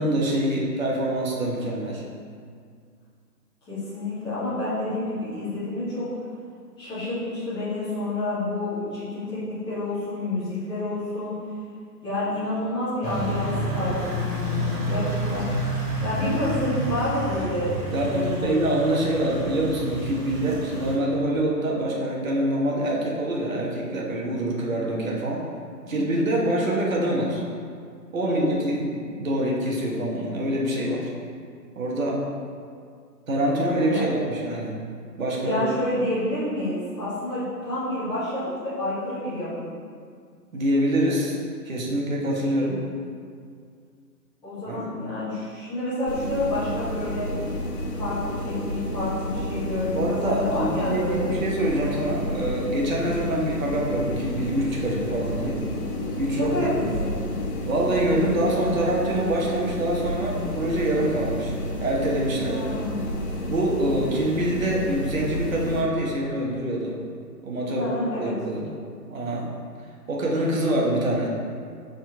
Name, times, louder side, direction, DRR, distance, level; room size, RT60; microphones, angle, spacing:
voice 1, 0.0-2.0 15.2-15.4 17.9-25.5 25.9-27.4 28.1-31.1 31.7-32.2 33.3-34.7 35.2-35.6 40.5-41.4 41.6-42.8 44.7-44.9 49.9-55.6 56.2-56.9 57.6-61.5 61.8-62.6 63.5-67.0 67.4-67.9 68.2-68.7 69.1-69.5 70.1-71.3, right 1 dB, 55° right, -2 dB, 1.5 m, -25 dB
voice 2, 3.7-6.0 6.8-11.4 12.0-15.5 16.0-18.5 25.8-26.2 28.2-28.5 33.8-34.0 35.4-39.7 44.4-47.3 48.0-51.3 53.2-53.5 56.4-57.1 62.3-63.1 67.7-68.3, left 1 dB, 10° left, -13 dB, 1.7 m, -29 dB
sound 1, 13.0-21.0, right 1 dB, 25° right, 1.4 m, -30 dB
sound 2, 46.1-65.8, equal, 55° left, 1.5 m, -31 dB
6.0 x 4.4 x 4.8 m, 2.1 s
figure-of-eight pair, 145°, 49 cm